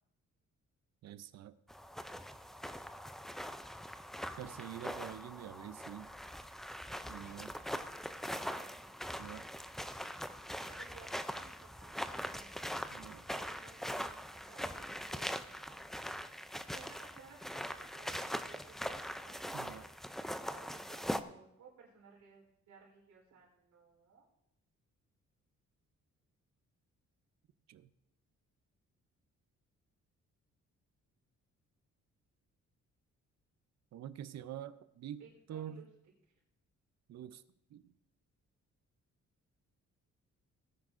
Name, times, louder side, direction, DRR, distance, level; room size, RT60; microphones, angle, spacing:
voice 1, 1.0-1.6 4.4-6.1 7.1-7.5 9.2-9.5 12.9-13.2 19.5-19.9 27.7-27.9 33.9-35.8 37.1-37.4 37.7-37.9, right 10 dB, 65° right, 14 dB, 0.6 m, -46 dB
sound 1, 1.7-21.2, equal, ahead, 0.3 m, -42 dB
voice 2, 10.7-12.8 13.2-16.0 16.7-24.3 35.2-35.9, right 5 dB, 85° right, -2 dB, 3.9 m, -59 dB
18.0 x 9.7 x 2.5 m, 0.81 s
wide cardioid pair, 155°, 29 cm